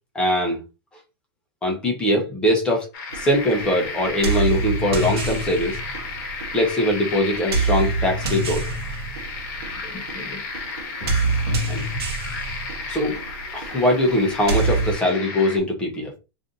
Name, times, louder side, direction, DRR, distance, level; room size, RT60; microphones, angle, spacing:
voice 1, 0.1-0.6 1.6-2.9 3.1-5.8 6.5-8.6 9.8-10.4 11.0-11.1 11.7-11.8 12.9-13.2 13.5-16.1, left 1 dB, 5° left, 0.6 m, -22 dB
sound 1, 2.9-15.6, left 4 dB, 35° left, 0.9 m, -33 dB
sound 2, 3.1-14.9, right 3 dB, 70° right, 0.9 m, -27 dB
2.5 x 2.5 x 3.7 m
supercardioid pair, 175°, 13 cm